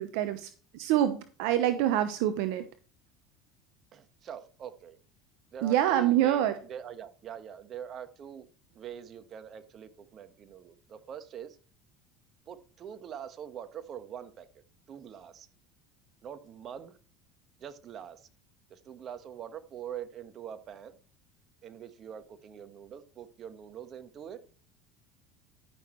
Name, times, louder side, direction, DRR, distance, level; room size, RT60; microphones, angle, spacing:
voice 1, 0.0-2.6 5.6-6.5, right 12 dB, 75° right, 0.9 m, -26 dB
voice 2, 3.9-5.0 5.5-8.5 8.7-11.6 12.5-14.5 14.9-15.5 16.2-17.0 17.6-18.3 18.7-21.0 21.6-24.4, right 9 dB, 45° right, 1.4 m, -44 dB
13.0 x 6.4 x 3.2 m
supercardioid pair, 90°, 0 cm